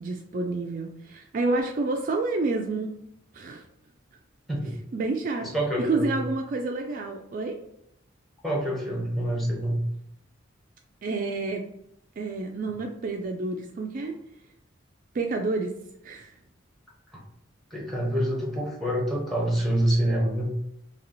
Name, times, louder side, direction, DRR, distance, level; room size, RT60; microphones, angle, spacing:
voice 1, 0.0-2.9 3.3-3.6 4.9-5.5 5.8-7.6 11.0-11.7 12.2-14.2 15.1-15.8 16.0-16.3, right 3 dB, 40° right, 3 dB, 0.3 m, -29 dB
voice 2, 5.4-6.2 8.4-9.8 17.7-20.5, right 1 dB, ahead, -2 dB, 0.9 m, -26 dB
2.9 x 2.9 x 3.9 m, 0.77 s
head